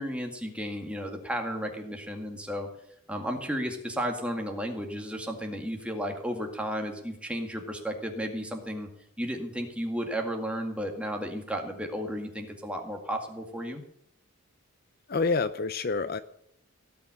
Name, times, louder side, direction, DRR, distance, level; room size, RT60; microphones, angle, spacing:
voice 1, 0.0-2.7 3.1-8.9 9.2-13.8, equal, 5° right, 2 dB, 2.0 m, -33 dB
voice 2, 15.1-16.2, left 4 dB, 45° left, 12 dB, 0.5 m, -27 dB
17.5 x 5.9 x 9.9 m, 0.73 s
head